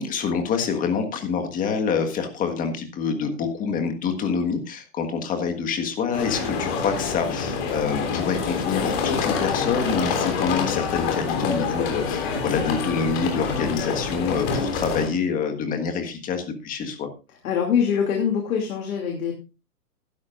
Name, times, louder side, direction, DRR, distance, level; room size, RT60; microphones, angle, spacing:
voice 1, 0.0-17.1, left 6 dB, 15° left, 6 dB, 1.6 m, -26 dB
sound 1, 6.1-15.1, left 5 dB, 40° left, 3.6 m, -26 dB
voice 2, 17.4-19.3, left 7 dB, 60° left, 2 dB, 2.8 m, -23 dB
15.0 x 12.0 x 2.5 m, 0.30 s
hypercardioid pair, 150°, 48 cm